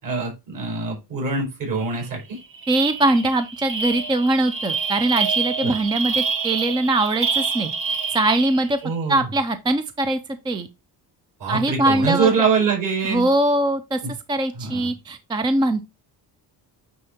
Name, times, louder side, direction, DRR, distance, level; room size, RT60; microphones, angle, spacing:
voice 1, 0.0-2.4 5.6-5.7 8.8-9.2 11.4-13.3 14.0-14.1 14.6-14.9, right 5 dB, 50° right, 4.4 m, -24 dB
sound 1, 1.9-2.1 2.4-8.8, right 5 dB, 30° right, 1.0 m, -27 dB
voice 2, 2.7-8.8 9.1-10.7 11.5-12.3 13.0-14.0 14.3-15.8, right 2 dB, 10° right, 0.3 m, -22 dB
9.2 x 3.8 x 4.2 m
cardioid pair, 170°, 41 cm